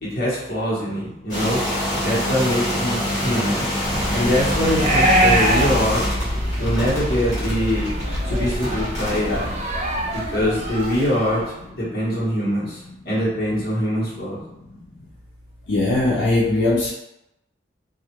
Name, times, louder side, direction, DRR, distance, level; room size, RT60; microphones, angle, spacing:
voice 1, 0.0-1.6 2.0-3.6 4.1-6.1 6.6-7.9 8.2-9.5 10.1-11.4 11.8-14.4, equal, 55° left, -7 dB, 1.0 m, -23 dB
sound 1, 1.3-9.4, left 1 dB, 20° left, 1.0 m, -26 dB
sound 2, 3.8-11.5, equal, 35° right, 0.4 m, -23 dB
voice 2, 15.7-16.9, left 2 dB, 85° left, -5 dB, 0.5 m, -19 dB
2.3 x 2.1 x 2.9 m, 0.85 s
head